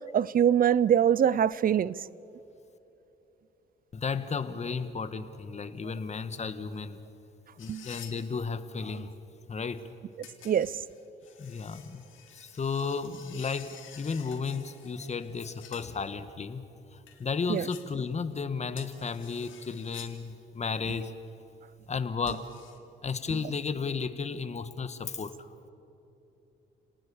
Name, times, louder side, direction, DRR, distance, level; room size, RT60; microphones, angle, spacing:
voice 1, 0.1-1.9 7.7-7.9 10.4-10.7 17.5-17.7, right 9 dB, 45° right, 0.6 m, -23 dB
voice 2, 3.9-7.0 7.6-9.1 9.5-9.9 11.4-12.0 12.3-16.6 16.9-21.1 21.9-22.5 23.0-25.3, left 5 dB, 35° left, 1.6 m, -33 dB
sound 1, 7.6-8.2 10.2-15.9 17.1-17.9 18.7-20.2 22.3-22.8, left 9 dB, 80° left, 3.0 m, -50 dB
30.0 x 19.0 x 7.2 m
cardioid pair, 90°, 20 cm